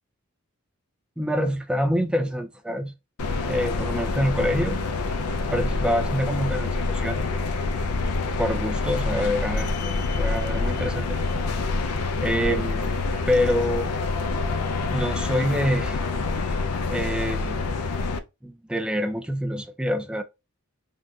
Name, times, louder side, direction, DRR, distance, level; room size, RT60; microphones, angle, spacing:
voice 1, 1.2-2.9 3.5-4.8 5.5-7.3 8.4-9.7 10.1-11.2 12.2-12.9 13.3-13.9 14.9-16.0 16.9-17.7 18.4-20.2, equal, 5° right, 0.3 m, -26 dB
sound 1, 3.2-18.2, left 3 dB, 85° left, 0.4 m, -26 dB
3.7 x 2.3 x 2.6 m
head